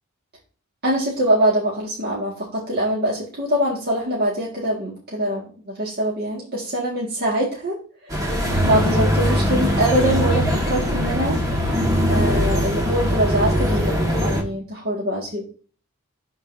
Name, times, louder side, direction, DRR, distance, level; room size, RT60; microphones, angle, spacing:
voice 1, 0.8-8.3 8.6-11.4 12.1-15.4, right 1 dB, 45° right, -4 dB, 1.7 m, -23 dB
sound 1, 8.1-14.4, equal, 15° right, 1.4 m, -21 dB
11.5 x 3.9 x 2.6 m, 0.39 s
head